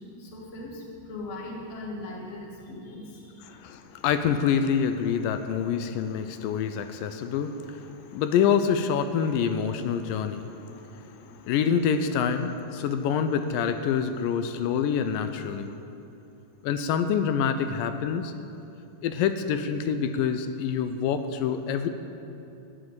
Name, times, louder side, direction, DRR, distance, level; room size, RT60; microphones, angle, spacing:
voice 1, 0.0-3.5, left 2 dB, 30° left, -2 dB, 1.7 m, -39 dB
voice 2, 3.5-15.8 16.6-18.3 19.0-21.9, left 7 dB, 85° left, 9 dB, 2.3 m, -26 dB
11.5 x 8.4 x 9.0 m, 2.8 s
omnidirectional pair, 3.9 m